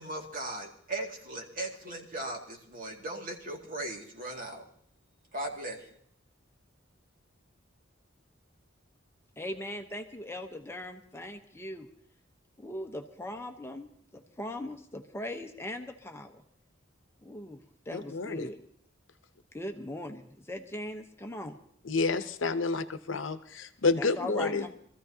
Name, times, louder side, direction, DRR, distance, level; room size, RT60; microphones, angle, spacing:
voice 1, 0.0-4.7 5.3-5.9, right 2 dB, 45° right, 1 dB, 2.2 m, -38 dB
voice 2, 9.4-11.9 12.6-13.9 14.1-16.4 17.2-18.6 19.5-21.6 24.0-24.7, left 1 dB, 15° left, 5 dB, 0.9 m, -39 dB
voice 3, 17.9-18.5 21.9-24.7, left 4 dB, 75° left, 10 dB, 0.8 m, -29 dB
23.5 x 14.5 x 2.8 m, 0.64 s
head